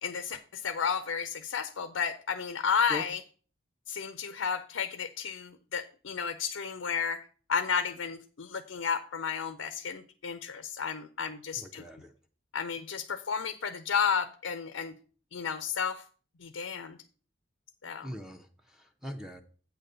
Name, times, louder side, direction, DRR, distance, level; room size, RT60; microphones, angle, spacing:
voice 1, 0.0-3.2 3.9-11.8 12.5-14.9 15.3-16.0 16.4-17.0 17.8-18.1, left 6 dB, 85° left, 9 dB, 0.6 m, -32 dB
voice 2, 11.6-12.1 18.0-19.4, left 1 dB, ahead, 4 dB, 0.6 m, -41 dB
8.4 x 3.9 x 6.7 m, 0.40 s
head